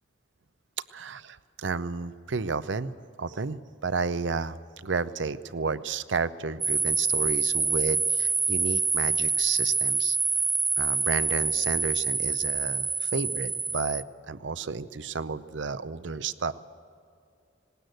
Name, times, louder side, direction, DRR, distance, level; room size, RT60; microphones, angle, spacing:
voice 1, 0.9-2.9 3.2-10.2 10.8-16.5, right 4 dB, 75° right, 15 dB, 0.7 m, -32 dB
sound 1, 6.6-14.0, right 4 dB, 10° right, 0.5 m, -26 dB
19.5 x 18.5 x 7.9 m, 2.4 s
head